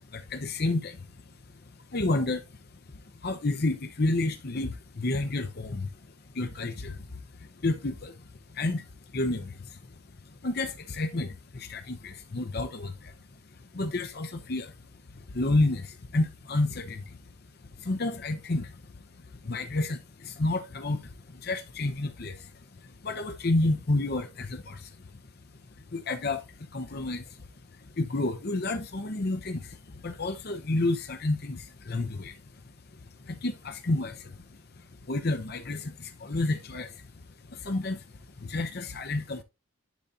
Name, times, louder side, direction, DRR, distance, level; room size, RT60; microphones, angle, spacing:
voice 1, 0.1-1.1 1.9-2.4 3.2-5.9 6.3-7.0 7.4-8.1 8.5-8.9 9.1-9.8 10.4-13.1 13.7-14.7 15.3-17.2 17.8-18.7 19.4-22.4 23.0-24.9 25.9-26.4 26.7-27.2 28.0-29.8 30.0-32.4 33.2-34.4 35.1-37.0 37.5-38.0 38.4-39.4, left 2 dB, 50° left, 0.7 m, -30 dB
10.5 x 3.9 x 2.8 m
head